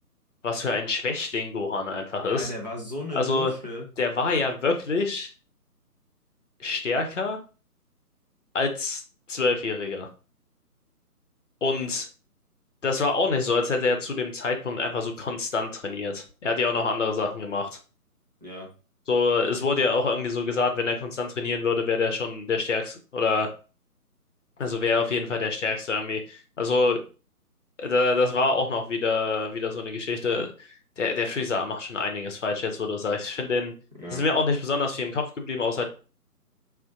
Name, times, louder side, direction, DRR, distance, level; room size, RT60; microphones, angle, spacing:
voice 1, 0.4-2.5 3.1-3.5 4.0-5.3 6.6-7.4 8.5-9.0 9.3-10.1 11.6-12.1 12.8-17.8 19.1-23.5 24.6-27.0 27.8-30.5 31.0-33.7 34.1-35.8, left 3 dB, 50° left, 4 dB, 0.7 m, -26 dB
voice 2, 2.2-3.9 18.4-18.7 34.0-34.2, left 1 dB, 30° right, -2 dB, 0.4 m, -35 dB
2.6 x 2.1 x 2.5 m, 0.35 s
figure-of-eight pair, 145°, 47 cm